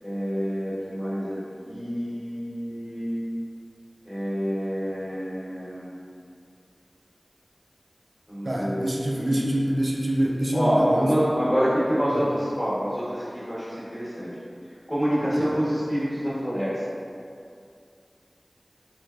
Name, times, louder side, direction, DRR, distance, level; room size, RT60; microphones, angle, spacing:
voice 1, 0.0-3.3 4.1-6.0 8.3-9.5 10.5-14.3 14.9-16.8, equal, 15° left, -11 dB, 1.0 m, -27 dB
voice 2, 8.4-11.1 12.1-12.3 15.4-15.6, right 1 dB, 60° right, -2 dB, 0.4 m, -26 dB
3.3 x 3.1 x 2.3 m, 2.4 s
wide cardioid pair, 55°, 0 cm